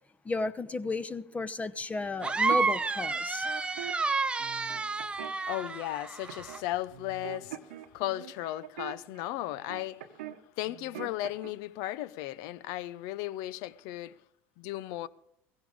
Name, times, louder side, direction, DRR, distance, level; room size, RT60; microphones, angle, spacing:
voice 1, 0.2-3.5, left 3 dB, 20° left, 0.9 m, -33 dB
sound 1, 2.2-6.6, right 4 dB, 15° right, 0.7 m, -30 dB
sound 2, 2.2-3.9 4.4-5.6 6.3-6.6 6.9-10.4 10.6-11.5, right 12 dB, 80° right, 1.0 m, -43 dB
voice 2, 5.5-10.0 10.6-14.2 14.6-15.1, left 15 dB, 65° left, 0.6 m, -36 dB
16.0 x 16.0 x 3.6 m
hypercardioid pair, 80°, 7 cm